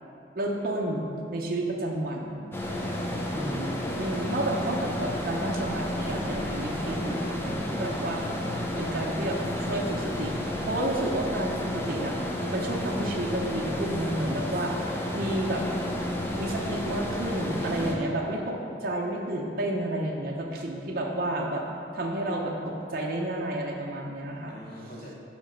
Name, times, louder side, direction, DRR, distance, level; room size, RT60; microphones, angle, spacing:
voice 1, 0.4-2.4 4.0-8.2 8.8-12.1 12.5-15.6 16.4-18.6 18.8-21.6 21.9-24.5 24.8-24.9, right 1 dB, 55° right, -1 dB, 0.7 m, -31 dB
sound 1, 2.5-17.9, left 1 dB, 15° left, 0.6 m, -31 dB
voice 2, 3.3-4.4 24.5-25.1, equal, 60° left, -2 dB, 1.2 m, -39 dB
5.1 x 5.1 x 5.8 m, 2.5 s
head